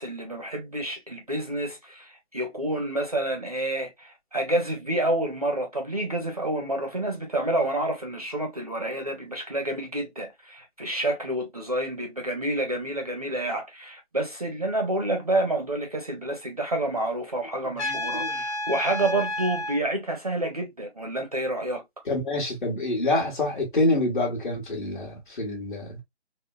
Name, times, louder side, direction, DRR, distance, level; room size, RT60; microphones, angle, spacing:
voice 1, 0.0-22.0, right 1 dB, 35° right, 0.5 m, -29 dB
voice 2, 17.6-18.4 22.0-26.0, left 2 dB, 45° left, 1.4 m, -27 dB
Trumpet, 17.8-19.8, left 1 dB, 75° left, 1.1 m, -30 dB
3.7 x 2.0 x 2.3 m
figure-of-eight pair, 160°, 34 cm